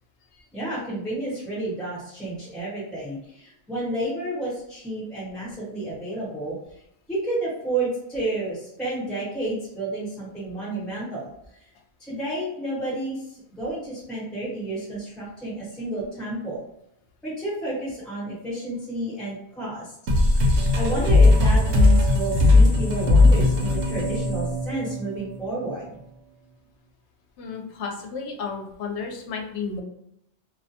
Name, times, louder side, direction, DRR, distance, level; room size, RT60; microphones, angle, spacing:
voice 1, 0.5-6.5 7.1-11.3 11.6-11.7 12.0-16.6 17.2-19.9 20.7-25.9, right 2 dB, ahead, -7 dB, 1.0 m, -30 dB
sound 1, 20.1-25.4, left 2 dB, 80° right, 0.9 m, -18 dB
voice 2, 27.4-29.8, left 5 dB, 80° left, 2 dB, 0.9 m, -33 dB
2.4 x 2.1 x 2.7 m, 0.77 s
omnidirectional pair, 1.1 m